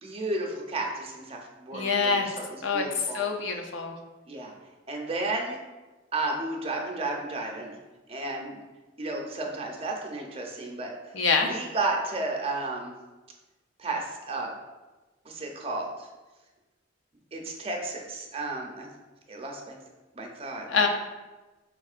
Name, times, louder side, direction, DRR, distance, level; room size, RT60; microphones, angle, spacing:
voice 1, 0.0-3.3 4.3-4.5 4.9-5.6 6.1-7.8 8.1-8.6 9.0-10.9 11.4-12.9 13.8-14.5 15.2-16.1 17.3-18.9 19.3-19.8 20.1-20.9, right 2 dB, 30° right, 0 dB, 0.6 m, -33 dB
voice 2, 1.7-2.3 2.6-2.8 3.1-3.9 11.1-11.5 20.7-20.9, left 5 dB, 80° left, 3 dB, 0.5 m, -25 dB
4.7 x 3.6 x 2.4 m, 1.2 s
head